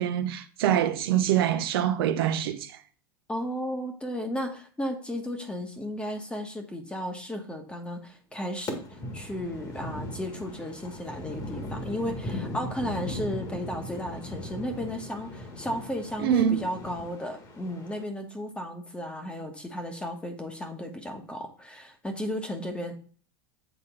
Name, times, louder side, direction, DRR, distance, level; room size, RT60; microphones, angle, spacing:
voice 1, 0.0-2.7 16.2-16.6, right 10 dB, 75° right, 0.8 m, -24 dB
voice 2, 3.3-22.9, equal, 10° left, 1.2 m, -34 dB
sound 1, 8.7-18.0, left 1 dB, 30° left, 1.6 m, -38 dB
8.2 x 4.0 x 3.7 m
supercardioid pair, 120°, 12 cm